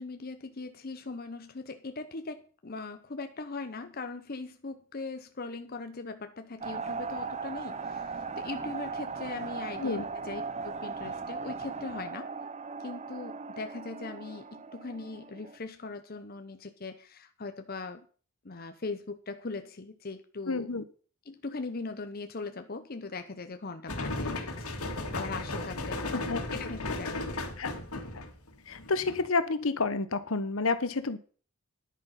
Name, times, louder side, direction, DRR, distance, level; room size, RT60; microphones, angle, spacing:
voice 1, 0.0-12.3 12.8-18.1 18.4-20.7 21.3-27.4, left 3 dB, 45° left, 8 dB, 0.8 m, -40 dB
sound 1, 6.6-15.6, right 4 dB, 30° right, 0.6 m, -38 dB
voice 2, 20.5-20.8 26.1-26.4 27.6-27.7 28.1-28.2 28.7-31.2, left 3 dB, 70° left, 12 dB, 1.1 m, -30 dB
sound 2, 23.9-29.3, left 2 dB, 90° left, 2.3 m, -35 dB
10.5 x 9.4 x 5.7 m, 0.40 s
head